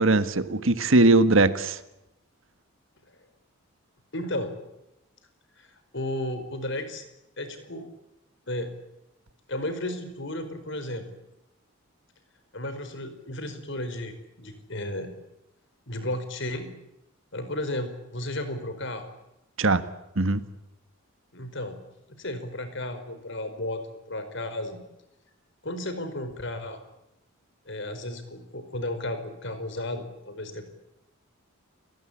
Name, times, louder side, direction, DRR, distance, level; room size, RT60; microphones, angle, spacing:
voice 1, 0.0-1.8 19.6-19.8 20.2-20.4, right 2 dB, 65° right, 12 dB, 1.6 m, -20 dB
voice 2, 4.1-4.5 5.6-7.0 7.4-7.9 8.5-8.7 9.5-11.1 12.5-15.1 15.9-16.7 17.3-19.1 21.3-21.8 22.2-24.8 25.6-26.8 27.7-30.6, left 1 dB, 55° left, 10 dB, 4.7 m, -33 dB
30.0 x 19.5 x 8.7 m, 0.89 s
head